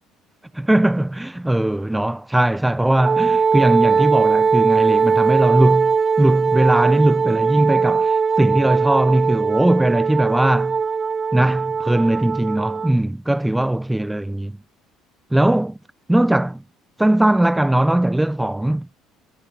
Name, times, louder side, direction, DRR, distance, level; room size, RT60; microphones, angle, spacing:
voice 1, 0.5-10.8 11.3-14.6 15.3-15.8 16.1-16.6 17.0-18.9, right 1 dB, 10° right, 0.8 m, -19 dB
Wind instrument woodwind instrument, 3.0-13.0, right 5 dB, 35° right, 0.5 m, -19 dB
hypercardioid pair, 65°, 0 cm